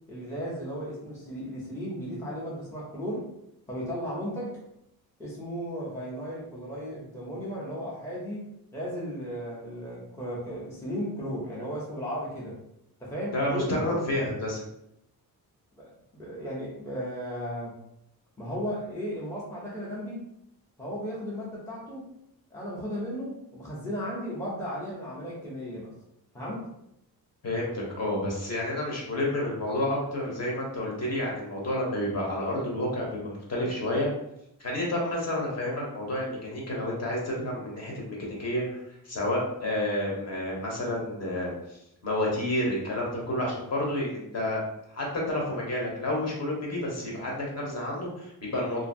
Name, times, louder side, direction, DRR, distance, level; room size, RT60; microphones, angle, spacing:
voice 1, 0.1-3.3 3.7-4.6 5.2-8.5 8.7-12.6 13.0-14.0 15.8-17.7 18.4-20.2 20.8-22.1 22.5-25.9 26.3-26.7, equal, 10° left, -6 dB, 0.6 m, -35 dB
voice 2, 13.3-14.6 27.4-34.1 34.6-44.6 44.9-48.8, left 1 dB, 45° left, -3 dB, 0.8 m, -30 dB
2.6 x 2.5 x 2.6 m, 0.78 s
wide cardioid pair, 155°, 37 cm